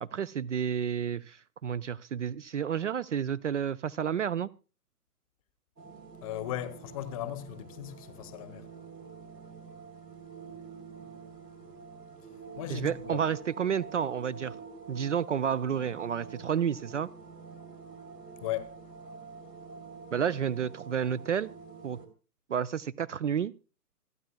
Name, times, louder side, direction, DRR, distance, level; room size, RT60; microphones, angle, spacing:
voice 1, 0.0-4.5 12.7-14.6 14.9-17.1 20.1-21.5 21.8-22.0 22.5-23.5, right 8 dB, 50° right, 0.5 m, -30 dB
sound 1, 5.8-22.1, right 5 dB, 85° right, 3.5 m, -47 dB
voice 2, 6.2-8.7 12.6-13.2 18.4-18.8, left 12 dB, 20° left, 0.9 m, -37 dB
26.0 x 9.5 x 2.3 m
figure-of-eight pair, 130°, 48 cm